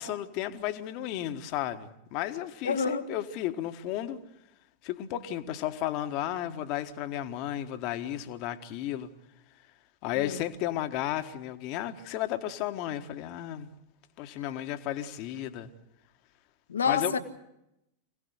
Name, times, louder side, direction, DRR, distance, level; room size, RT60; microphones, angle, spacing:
voice 1, 0.0-4.2 4.8-9.1 10.0-13.7 14.2-15.7 16.8-17.1, left 12 dB, 45° left, 1.4 m, -33 dB
voice 2, 2.6-3.1 10.2-10.4 16.7-17.2, left 6 dB, 70° left, 1.3 m, -28 dB
25.5 x 17.5 x 8.1 m
figure-of-eight pair, 90°, 0 cm